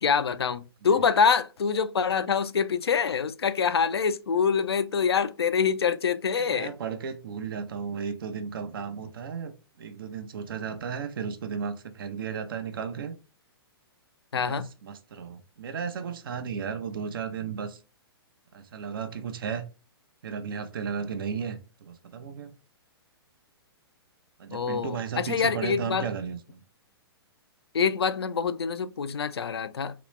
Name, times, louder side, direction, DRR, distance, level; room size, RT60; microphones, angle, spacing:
voice 1, 0.0-6.7 14.3-14.7 24.5-26.1 27.7-29.9, left 6 dB, 80° left, 0.4 m, -25 dB
voice 2, 6.4-9.5 9.8-13.1 14.3-17.8 18.5-19.6 20.2-22.5 24.4-26.6, right 6 dB, 60° right, 0.6 m, -34 dB
3.1 x 3.0 x 3.1 m
figure-of-eight pair, 115°, 13 cm